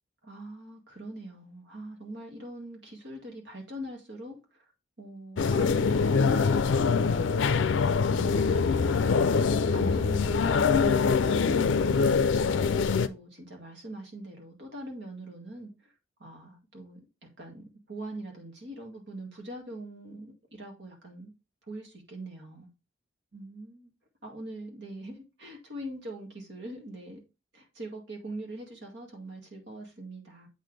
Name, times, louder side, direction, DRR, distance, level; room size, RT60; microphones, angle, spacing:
voice 1, 0.2-4.6 5.0-7.5 8.1-9.2 9.7-15.9 16.2-21.3 21.7-22.7 23.3-23.9 24.2-27.2 27.5-30.5, right 1 dB, 65° right, 2.1 m, -42 dB
sound 1, 5.4-13.1, left 5 dB, 75° left, 0.4 m, -24 dB
8.1 x 4.2 x 3.2 m
head